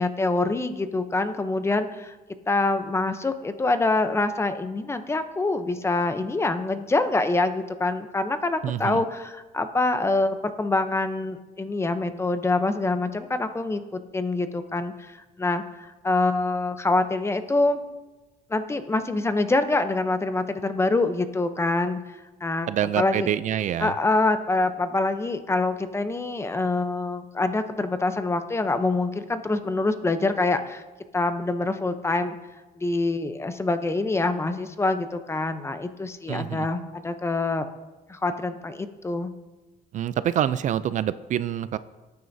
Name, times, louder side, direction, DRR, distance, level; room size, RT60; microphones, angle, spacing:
voice 1, 0.0-2.1 2.5-17.8 18.5-22.0 22.4-22.7 23.0-23.3 23.8-30.8 31.1-32.4 32.8-37.7 38.1-39.3, left 2 dB, 15° left, 9 dB, 0.7 m, -25 dB
voice 2, 8.6-9.0 22.7-23.9 36.3-36.7 39.9-41.8, right 10 dB, 50° right, 15 dB, 0.4 m, -26 dB
18.0 x 9.4 x 2.7 m, 1.2 s
cardioid pair, 130°, 16 cm